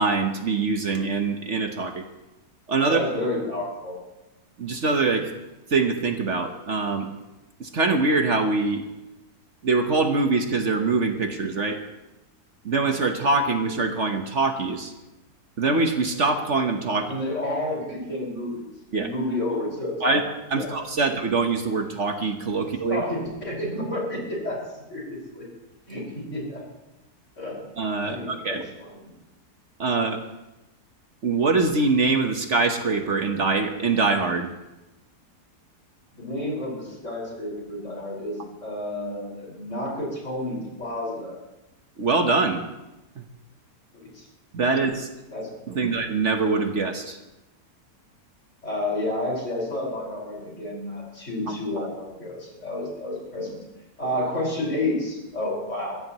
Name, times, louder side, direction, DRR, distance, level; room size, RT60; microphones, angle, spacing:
voice 1, 0.0-2.0 2.7-3.0 4.6-5.3 5.7-7.1 7.6-8.8 9.6-11.8 12.6-14.9 15.6-17.1 18.9-19.1 20.0-20.2 20.5-23.0 27.8-28.6 29.8-30.2 31.2-34.5 42.0-42.6 43.2-43.3 44.5-45.1 45.7-47.2 51.5-51.9, right 3 dB, 50° right, 5 dB, 1.3 m, -23 dB
voice 2, 2.9-4.0 17.0-20.2 20.5-20.7 22.9-24.6 24.9-25.5 25.9-26.6 27.4-27.6 28.0-29.1 36.2-41.4 43.9-44.3 44.8-44.9 45.3-45.8 48.6-53.6 54.0-56.0, left 1 dB, 45° left, -3 dB, 5.5 m, -30 dB
23.0 x 15.5 x 3.0 m, 0.98 s
omnidirectional pair, 1.7 m